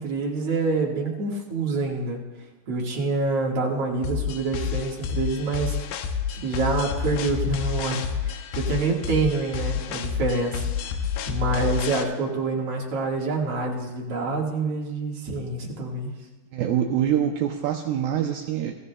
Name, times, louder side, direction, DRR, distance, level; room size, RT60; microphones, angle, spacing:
voice 1, 0.0-2.2 2.7-5.8 6.3-10.6 11.3-16.1, right 3 dB, 50° right, -3 dB, 2.0 m, -26 dB
sound 1, 4.0-12.0, left 7 dB, 80° left, 2.1 m, -29 dB
voice 2, 16.5-18.8, right 10 dB, 80° right, 3 dB, 2.3 m, -25 dB
23.5 x 14.5 x 2.2 m, 1.2 s
omnidirectional pair, 4.7 m